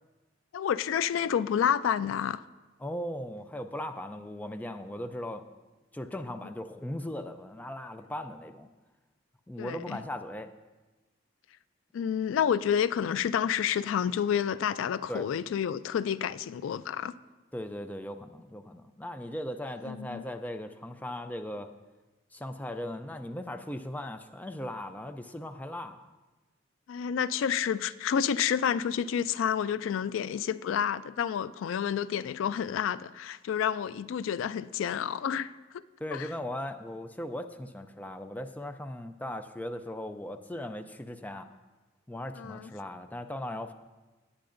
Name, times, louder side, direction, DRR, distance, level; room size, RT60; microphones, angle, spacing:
voice 1, 0.5-2.4 9.6-10.0 11.9-17.1 19.9-20.2 26.9-35.8 36.1-36.3 42.4-42.7, left 8 dB, 85° left, 0.3 m, -29 dB
voice 2, 2.8-5.5 5.9-8.7 9.5-10.5 15.1-15.3 17.5-21.7 22.3-26.1 36.0-41.5 42.1-43.7, left 1 dB, 10° left, 0.4 m, -38 dB
18.5 x 8.6 x 2.6 m
head